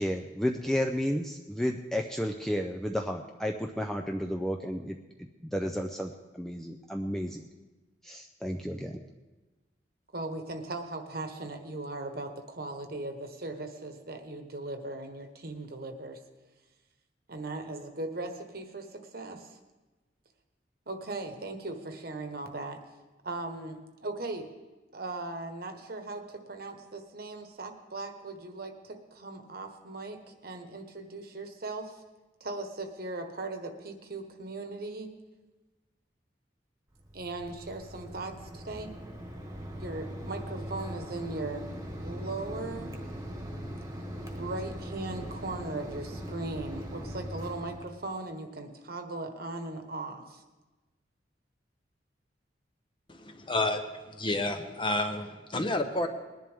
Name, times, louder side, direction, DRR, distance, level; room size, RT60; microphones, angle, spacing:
voice 1, 0.0-7.4 8.0-9.0, equal, ahead, 3 dB, 0.5 m, -32 dB
voice 2, 10.1-16.2 17.3-19.5 20.9-22.8 23.2-24.5 24.9-32.0 32.4-35.1 37.1-38.9 39.8-41.6 42.0-42.9 44.3-50.4, right 2 dB, 55° right, 6 dB, 1.2 m, -38 dB
Mechanisms, 36.9-47.9, equal, 20° right, 1.4 m, -40 dB
voice 3, 53.1-56.1, left 2 dB, 30° left, 6 dB, 0.9 m, -30 dB
20.5 x 10.5 x 3.6 m, 1.2 s
head